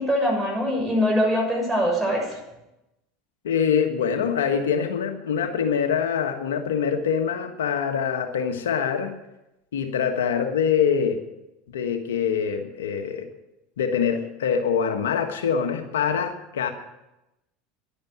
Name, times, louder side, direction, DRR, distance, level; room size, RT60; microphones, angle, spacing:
voice 1, 0.0-2.4, equal, 10° right, -1 dB, 6.9 m, -23 dB
voice 2, 3.4-9.1 9.7-11.2 11.7-13.3 13.8-16.7, left 7 dB, 90° left, 5 dB, 1.4 m, -24 dB
11.0 x 8.8 x 9.4 m, 0.94 s
hypercardioid pair, 100°, 0 cm